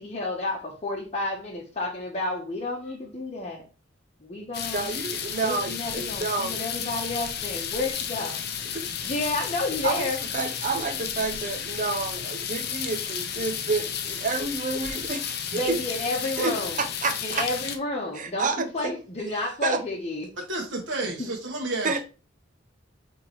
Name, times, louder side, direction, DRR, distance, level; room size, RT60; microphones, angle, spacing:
voice 1, 0.0-3.7 4.2-4.9 5.4-8.4 9.0-10.2 15.5-16.8 17.2-20.3 21.2-21.3, left 2 dB, 35° left, 1.2 m, -31 dB
sound 1, 4.5-17.8, left 8 dB, 60° left, 0.7 m, -32 dB
voice 2, 4.7-6.5 8.7-8.8 9.8-10.1 10.3-15.8 16.4-17.4 18.1-18.7 19.6-19.8 21.8-22.0, right 3 dB, 45° right, 0.8 m, -29 dB
voice 3, 20.5-22.0, right 2 dB, 85° right, 1.5 m, -31 dB
8.4 x 3.7 x 3.2 m
head